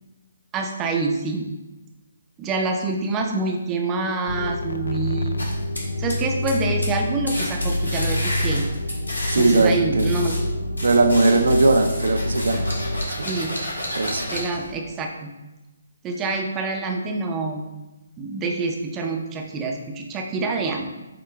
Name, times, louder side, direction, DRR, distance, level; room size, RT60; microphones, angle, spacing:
voice 1, 0.5-1.5 2.4-5.3 6.0-8.6 9.3-10.4 13.2-13.5 14.3-15.3 16.0-17.7 18.2-20.9, right 3 dB, 15° right, 2 dB, 0.6 m, -26 dB
sound 1, 4.2-13.0, left 1 dB, 65° left, 0.5 m, -27 dB
sound 2, 5.4-6.6 6.8-7.0 7.3-10.4 10.8-14.7, left 1 dB, 85° left, 1.8 m, -31 dB
voice 2, 9.3-10.1 10.8-12.7 14.0-14.3, right 2 dB, 65° right, 6 dB, 0.6 m, -19 dB
7.8 x 3.7 x 3.4 m, 1.0 s
figure-of-eight pair, 135°, 0 cm